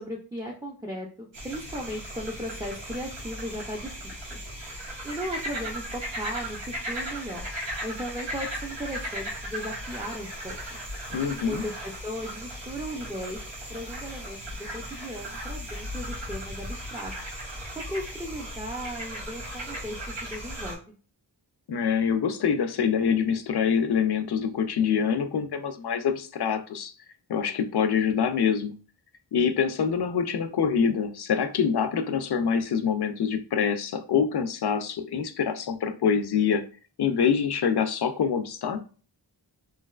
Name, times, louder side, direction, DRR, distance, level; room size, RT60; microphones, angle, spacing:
voice 1, 0.0-4.4 5.0-7.4 7.8-10.8 11.4-17.1 17.7-20.9, equal, 10° right, 0.4 m, -37 dB
sound 1, 1.3-20.7, equal, 85° right, 1.3 m, -37 dB
voice 2, 11.1-11.6 21.7-26.9 27.3-28.8 29.3-36.6 37.0-38.8, left 7 dB, 60° left, 0.5 m, -25 dB
3.2 x 2.9 x 2.3 m
wide cardioid pair, 60°, 44 cm